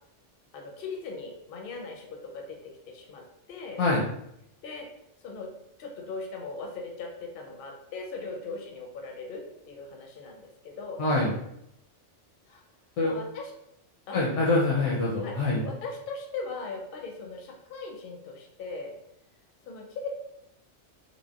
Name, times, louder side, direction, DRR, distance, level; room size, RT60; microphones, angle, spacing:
voice 1, 0.5-2.6 2.9-3.8 4.6-4.9 5.2-5.5 5.8-11.0 12.5-12.6 13.0-13.5 14.1-14.2 15.2-15.4 15.6-19.0 19.7-20.1, left 3 dB, 60° left, 1 dB, 0.6 m, -39 dB
voice 2, 11.0-11.4 13.0-13.1 14.1-15.7, left 2 dB, 80° left, -4 dB, 0.9 m, -25 dB
3.3 x 2.1 x 2.3 m, 0.78 s
omnidirectional pair, 1.2 m